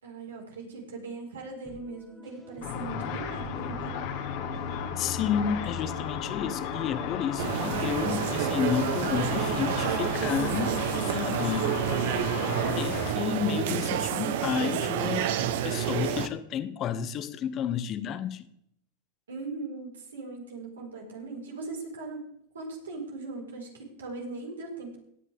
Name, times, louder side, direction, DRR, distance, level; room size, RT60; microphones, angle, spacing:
voice 1, 0.0-3.9 19.3-22.3 22.5-25.0, right 3 dB, 85° right, 5.0 m, -39 dB
sound 1, 1.7-11.7, right 1 dB, 15° right, 2.0 m, -50 dB
Car / Traffic noise roadway noise / Engine, 2.6-13.1, left 6 dB, 65° left, 2.5 m, -34 dB
voice 2, 5.0-11.7 12.8-15.3 15.6-18.4, left 8 dB, 40° left, 1.1 m, -31 dB
sound 2, 7.4-16.3, right 10 dB, 65° right, 1.1 m, -29 dB
17.5 x 9.9 x 3.6 m
hypercardioid pair, 95°, 0 cm